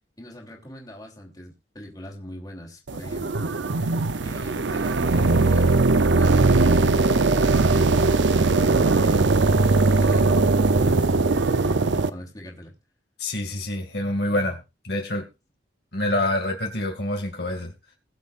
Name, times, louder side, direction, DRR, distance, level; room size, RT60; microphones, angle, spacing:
voice 1, 0.2-3.7 4.2-5.8 6.1-9.4 9.8-10.5 10.8-12.7, equal, 20° left, 3.1 m, -42 dB
sound 1, 2.9-12.1, right 3 dB, 75° right, 0.7 m, -20 dB
voice 2, 13.2-14.6 14.8-15.3 15.9-17.7, left 1 dB, 60° left, 2.3 m, -26 dB
21.5 x 7.4 x 2.5 m
head